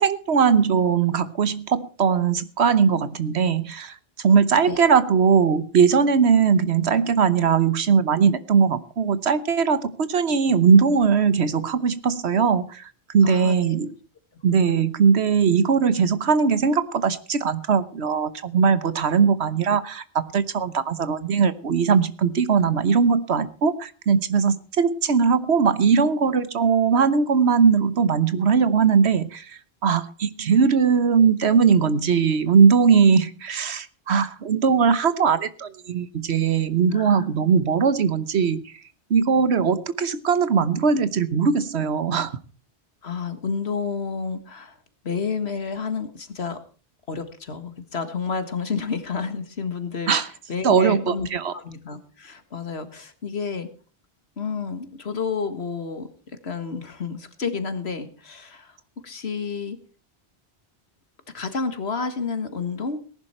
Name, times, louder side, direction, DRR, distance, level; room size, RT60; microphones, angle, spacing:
voice 1, 0.0-14.0 14.4-20.0 20.3-29.5 29.8-38.6 39.1-42.3 50.1-50.3 50.6-51.5, right 6 dB, 80° right, 14 dB, 1.3 m, -20 dB
voice 2, 13.2-13.8 36.9-37.2 43.0-44.8 45.0-46.6 47.1-51.3 51.5-53.7 54.4-56.1 56.4-58.7 59.0-59.8 61.3-63.0, left 5 dB, 75° left, 10 dB, 1.9 m, -30 dB
18.5 x 11.0 x 4.4 m, 0.39 s
omnidirectional pair, 1.1 m